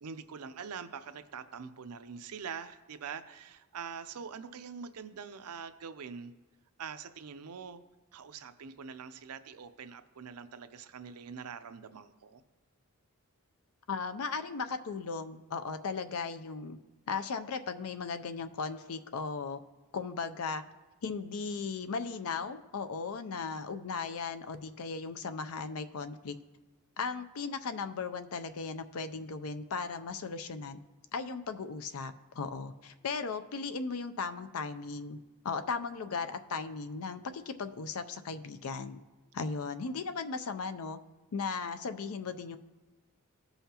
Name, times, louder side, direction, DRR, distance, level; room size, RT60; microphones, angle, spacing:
voice 1, 0.0-6.3 6.8-7.8 8.1-12.4, right 6 dB, 85° right, 10 dB, 0.5 m, -44 dB
voice 2, 13.9-16.8 17.1-19.6 19.9-20.6 21.0-26.4 27.0-30.8 31.1-35.2 35.4-39.0 39.3-41.0 41.3-42.6, left 5 dB, 70° left, 10 dB, 0.5 m, -37 dB
16.0 x 5.6 x 2.9 m, 1.2 s
head